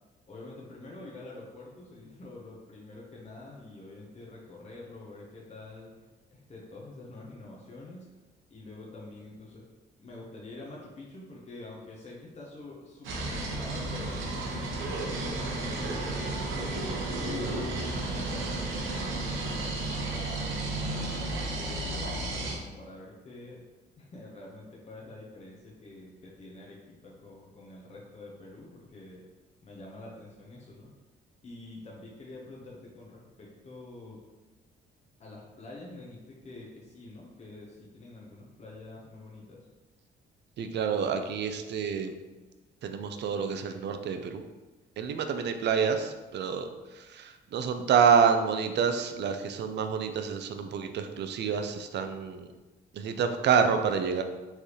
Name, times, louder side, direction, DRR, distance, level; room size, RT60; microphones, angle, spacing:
voice 1, 0.3-5.9 6.3-8.1 8.5-9.6 10.0-14.3 14.7-17.8 18.2-23.6 24.0-29.2 29.6-30.9 31.4-34.2 35.2-39.6, left 2 dB, 35° left, -4 dB, 0.9 m, -47 dB
sound 1, 13.0-22.6, right 2 dB, 80° right, 0.9 m, -32 dB
voice 2, 40.6-42.1 42.8-44.4 45.0-52.5 52.9-54.2, right 6 dB, 60° right, 7 dB, 0.5 m, -28 dB
4.5 x 3.3 x 3.0 m, 1.2 s
cardioid pair, 90°, 20 cm